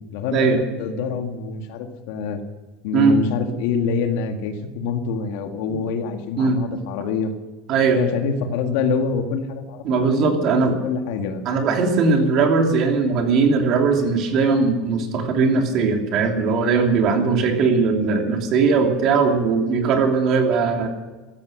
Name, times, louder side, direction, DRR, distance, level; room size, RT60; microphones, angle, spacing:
voice 1, 0.1-2.4 2.8-7.3 7.9-11.5, left 5 dB, 65° left, 6 dB, 2.0 m, -26 dB
voice 2, 7.7-8.0 9.8-10.8 11.4-20.9, right 4 dB, 40° right, 3 dB, 2.9 m, -19 dB
15.5 x 13.5 x 6.6 m, 1.2 s
supercardioid pair, 165°, 0 cm